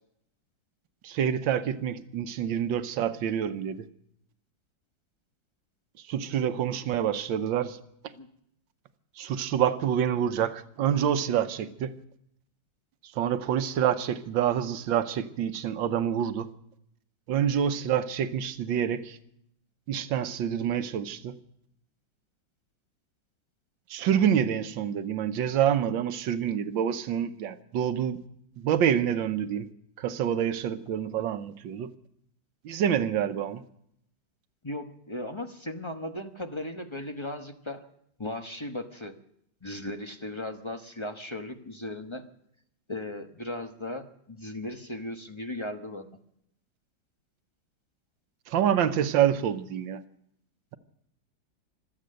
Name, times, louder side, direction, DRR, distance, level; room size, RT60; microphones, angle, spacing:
voice 1, 1.0-3.8 6.1-7.8 9.2-11.9 13.1-16.5 17.3-19.2 19.9-21.3 23.9-28.2 28.6-29.7 30.0-31.9 32.6-33.6 48.5-50.0, right 9 dB, 90° right, 1.6 m, -27 dB
voice 2, 34.6-37.9 38.2-39.1 39.6-42.3 42.9-46.1, left 1 dB, 20° left, 0.8 m, -37 dB
25.0 x 8.6 x 6.5 m
omnidirectional pair, 2.0 m